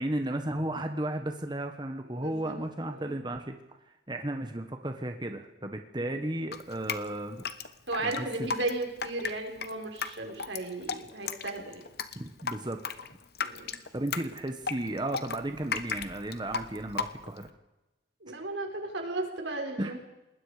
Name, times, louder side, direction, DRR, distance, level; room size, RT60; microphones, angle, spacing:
voice 1, 0.0-3.5 4.1-7.4 8.0-8.5 12.1-12.8 13.9-17.5 19.8-20.0, right 1 dB, 25° right, 6 dB, 1.2 m, -34 dB
voice 2, 2.1-2.6 2.9-3.2 6.0-6.2 7.9-11.8 13.4-13.7 18.2-20.0, right 2 dB, 85° right, 3 dB, 4.8 m, -35 dB
Drip, 6.5-17.5, left 5 dB, 60° left, 1.2 m, -36 dB
26.0 x 20.0 x 5.0 m, 0.98 s
head